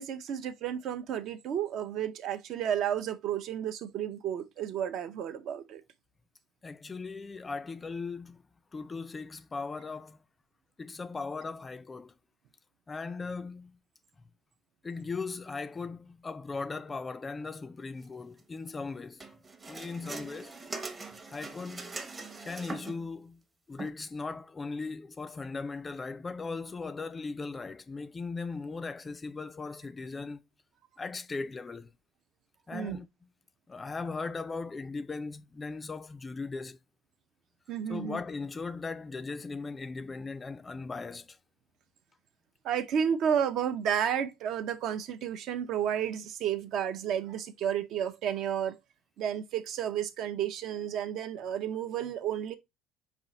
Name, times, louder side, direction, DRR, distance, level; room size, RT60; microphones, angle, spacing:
voice 1, 0.0-5.8 32.7-33.0 37.7-38.2 42.6-48.8 49.2-52.5, right 9 dB, 60° right, 0.6 m, -32 dB
voice 2, 6.6-8.4 8.7-10.2 10.8-12.2 12.9-13.8 14.8-19.4 19.7-20.5 21.0-22.0 22.4-23.4 23.7-30.4 31.0-31.9 32.7-33.1 33.7-36.8 37.9-41.4, left 4 dB, 20° left, 0.3 m, -38 dB
sound 1, 19.2-23.1 23.8-23.9, right 3 dB, 20° right, 0.7 m, -42 dB
5.1 x 2.4 x 4.0 m
cardioid pair, 120°, 0 cm